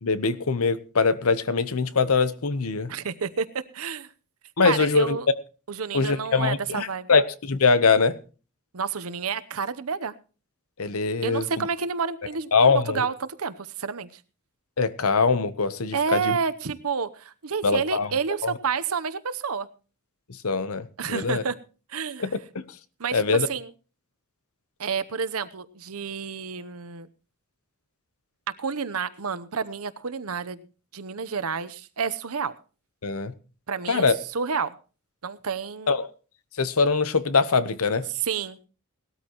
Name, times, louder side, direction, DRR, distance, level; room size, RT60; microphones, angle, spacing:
voice 1, 0.0-2.9 4.6-5.2 5.9-8.2 10.8-11.6 12.5-13.1 14.8-16.4 17.6-18.1 18.4-18.5 20.4-21.4 22.2-22.6 23.1-23.5 33.0-33.3 33.9-34.1 35.9-36.1 36.6-38.0, left 4 dB, 75° left, 14 dB, 0.9 m, -23 dB
voice 2, 2.9-3.5 3.7-4.1 4.6-5.3 5.7-7.1 8.7-10.1 11.2-14.1 15.9-19.7 21.0-21.6 21.9-22.3 23.0-23.2 23.5-23.7 24.8-27.1 28.6-30.6 30.9-32.5 33.7-34.0 34.3-34.7 35.2-36.0 38.2-38.6, right 6 dB, 80° right, 14 dB, 0.9 m, -29 dB
18.5 x 13.0 x 3.0 m, 0.36 s
head